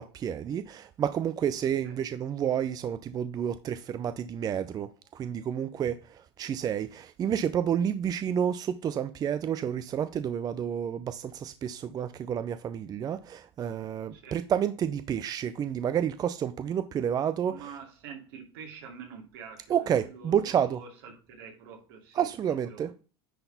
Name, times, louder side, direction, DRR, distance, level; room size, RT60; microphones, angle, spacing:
voice 1, 0.0-17.7 19.7-20.8 22.1-22.9, right 9 dB, 30° right, 0.5 m, -30 dB
voice 2, 17.5-19.8 20.0-22.9, right 6 dB, 70° right, 2.6 m, -46 dB
10.0 x 3.9 x 4.0 m
supercardioid pair, 105°, 13 cm